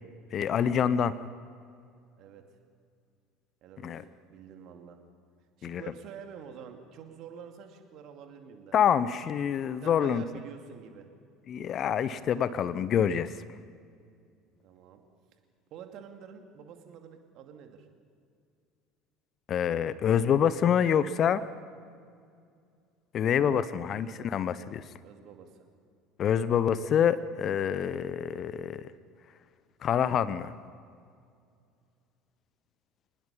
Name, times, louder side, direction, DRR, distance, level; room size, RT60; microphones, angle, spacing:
voice 1, 0.3-1.2 3.8-4.0 5.6-5.8 8.7-10.2 11.5-13.3 19.5-21.4 23.1-24.8 26.2-28.8 29.8-30.5, left 8 dB, 40° left, 15 dB, 0.8 m, -26 dB
voice 2, 3.6-4.0 4.3-5.0 5.6-8.8 9.6-11.1 14.6-15.0 15.7-17.9 23.8-24.3 25.0-25.6, right 7 dB, 50° right, 5 dB, 2.5 m, -47 dB
26.0 x 20.0 x 5.5 m, 2.3 s
figure-of-eight pair, 65°, 0 cm